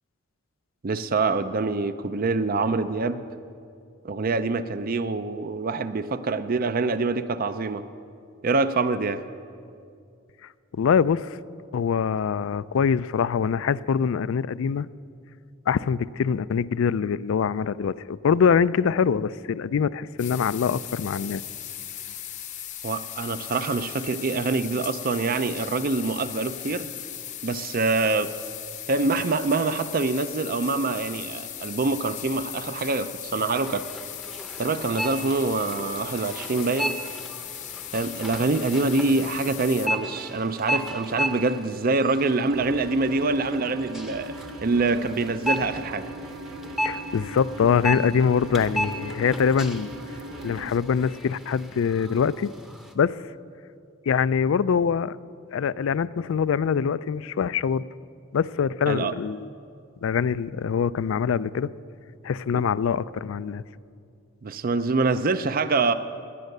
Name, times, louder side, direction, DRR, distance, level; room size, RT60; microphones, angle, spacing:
voice 1, 0.8-3.2 4.0-7.8 8.4-9.2 22.8-26.9 27.4-28.3 28.9-33.9 34.6-36.9 37.9-46.0 58.9-59.1 64.4-65.9, right 3 dB, 45° right, 12 dB, 0.5 m, -25 dB
voice 2, 10.8-11.4 11.7-14.9 15.7-21.4 46.8-49.9 50.4-52.5 53.0-53.2 54.1-55.2 55.5-57.8 58.3-59.5 60.0-61.7 62.2-63.6, left 6 dB, 70° left, 18 dB, 0.4 m, -24 dB
sound 1, 20.2-39.9, left 11 dB, 35° left, 0.7 m, -38 dB
sound 2, 33.5-52.9, equal, ahead, 0.7 m, -35 dB
sound 3, 42.5-50.7, right 1 dB, 85° right, 0.8 m, -39 dB
17.0 x 10.5 x 6.6 m, 2.4 s
head